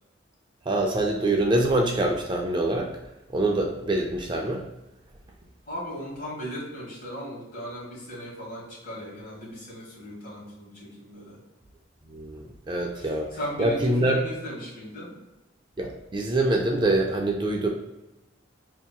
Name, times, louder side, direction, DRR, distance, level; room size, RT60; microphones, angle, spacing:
voice 1, 0.7-2.9 3.3-4.6 12.1-13.3 13.6-14.2 15.8-17.7, right 1 dB, 25° right, 1 dB, 0.4 m, -25 dB
voice 2, 5.7-11.4 12.9-15.1, equal, 50° left, -3 dB, 1.3 m, -37 dB
5.6 x 2.7 x 2.3 m, 0.98 s
head